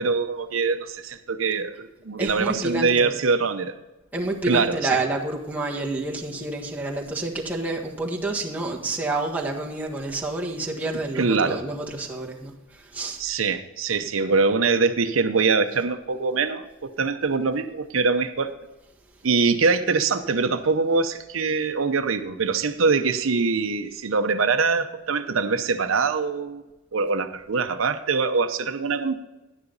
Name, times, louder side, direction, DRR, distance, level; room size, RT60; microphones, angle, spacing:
voice 1, 0.0-3.8 4.4-4.9 11.2-11.6 13.2-18.5 19.2-26.6 26.9-29.1, right 4 dB, 90° right, 9 dB, 0.7 m, -23 dB
voice 2, 2.2-3.1 4.1-13.2, right 2 dB, 10° right, -2 dB, 1.6 m, -28 dB
11.5 x 9.8 x 4.0 m, 1.0 s
head